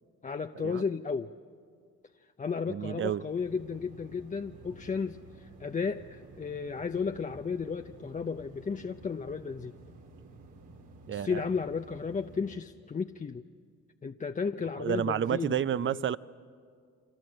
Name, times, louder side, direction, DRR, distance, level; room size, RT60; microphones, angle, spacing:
voice 1, 0.2-1.3 2.4-9.7 11.1-13.4 14.0-16.1, left 5 dB, 25° left, 6 dB, 0.6 m, -34 dB
voice 2, 2.7-3.2 11.1-11.4 14.8-16.2, right 9 dB, 40° right, 17 dB, 0.6 m, -30 dB
sound 1, 3.2-12.6, right 2 dB, 85° right, 3.2 m, -52 dB
30.0 x 25.0 x 7.8 m, 2.2 s
cardioid pair, 90°, 30 cm